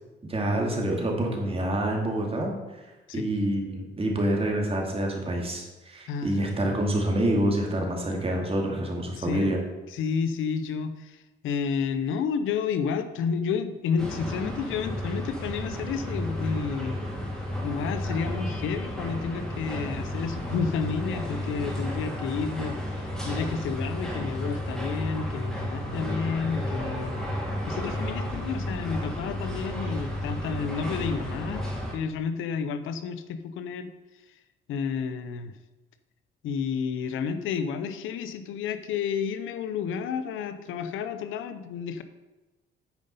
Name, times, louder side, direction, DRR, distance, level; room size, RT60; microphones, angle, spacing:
voice 1, 0.3-2.5 3.1-9.6, right 1 dB, 30° right, 0 dB, 2.3 m, -27 dB
voice 2, 6.1-6.4 9.2-9.5 9.9-16.9 17.6-27.2 27.7-31.6 31.9-33.9 34.7-35.5 36.4-42.0, left 6 dB, 85° left, 11 dB, 0.7 m, -31 dB
sound 1, 14.0-31.9, left 1 dB, ahead, 3.2 m, -32 dB
9.2 x 5.4 x 5.4 m, 1.1 s
cardioid pair, 90°, 20 cm